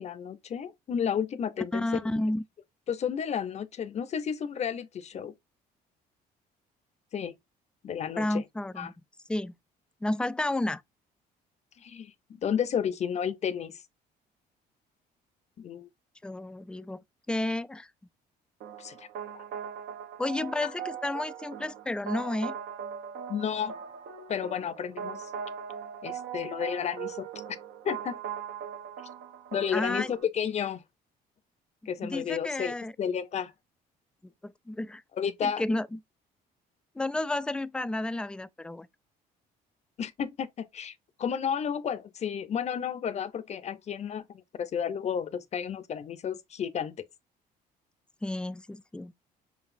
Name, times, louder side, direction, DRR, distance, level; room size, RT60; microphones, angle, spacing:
voice 1, 0.0-2.1 2.9-5.3 7.1-7.3 7.8-8.4 8.8-8.9 11.8-13.8 15.6-15.9 18.8-19.1 19.3-19.4 20.6-20.7 23.3-23.7 24.3-25.3 26.0-27.3 27.8-28.2 29.5-30.8 31.9-33.5 35.2-35.6 40.0-40.9 41.2-47.0, left 8 dB, 40° left, 0.6 m, -32 dB
voice 2, 1.7-2.4 8.2-8.9 9.3-9.5 10.0-10.8 16.2-17.0 17.3-17.9 20.2-22.6 29.7-30.1 32.0-32.9 34.4-35.0 35.4-36.0 37.0-38.9 48.2-49.1, left 2 dB, 5° left, 0.3 m, -31 dB
sound 1, 18.6-30.2, right 7 dB, 75° right, 1.1 m, -40 dB
5.2 x 4.0 x 2.6 m
cardioid pair, 110°, 17 cm